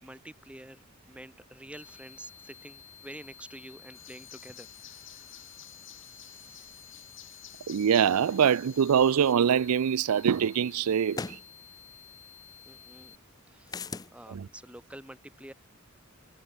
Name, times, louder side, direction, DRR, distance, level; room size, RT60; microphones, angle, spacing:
voice 1, 0.0-6.9 7.2-7.7 12.6-13.1 13.5-15.5, right 1 dB, 5° right, 3.1 m, -49 dB
sound 1, 1.7-13.2, left 8 dB, 35° left, 4.0 m, -53 dB
sound 2, 3.9-9.3, left 13 dB, 55° left, 6.9 m, -52 dB
voice 2, 7.7-11.4 14.3-14.5, right 8 dB, 90° right, 0.4 m, -24 dB
sound 3, 11.1-11.4 13.7-14.1, left 4 dB, 15° left, 0.4 m, -36 dB
head